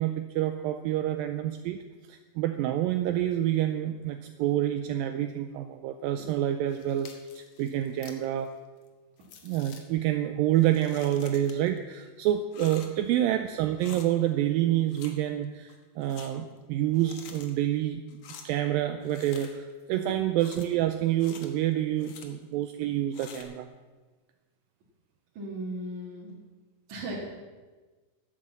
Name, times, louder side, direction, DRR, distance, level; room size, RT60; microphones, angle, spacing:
voice 1, 0.0-1.8 2.1-8.5 9.4-18.0 18.4-23.7, right 12 dB, 80° right, 7 dB, 2.2 m, -28 dB
sound 1, 6.7-8.3 8.9-9.0 9.2-9.8 10.6-11.8 12.5-13.1 13.8-14.1 14.9-15.1 15.4-16.3 16.9-17.5 18.1-18.4 19.0-19.7 20.4-20.6 21.2-21.5 22.0-22.3 23.1-23.4, left 6 dB, 60° left, 1.9 m, -48 dB
voice 2, 25.4-26.3 26.9-27.2, right 1 dB, 55° right, -7 dB, 3.4 m, -37 dB
12.0 x 9.6 x 7.3 m, 1.3 s
omnidirectional pair, 4.3 m